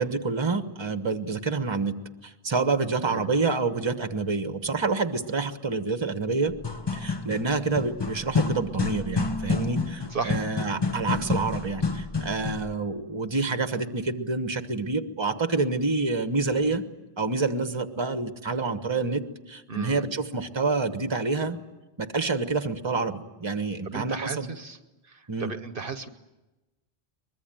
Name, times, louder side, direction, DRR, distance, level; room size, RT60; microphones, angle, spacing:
voice 1, 0.0-1.9 2.2-6.5 6.9-16.8 17.2-19.2 19.5-21.6 22.0-24.5 25.3-25.5, right 3 dB, 25° right, 9 dB, 1.2 m, -27 dB
sound 1, 6.5-12.7, left 4 dB, 25° left, 1.0 m, -29 dB
voice 2, 19.7-20.0 23.8-24.8 25.0-26.1, right 4 dB, 55° right, 9 dB, 1.2 m, -34 dB
23.5 x 21.5 x 9.1 m, 1.1 s
omnidirectional pair, 1.1 m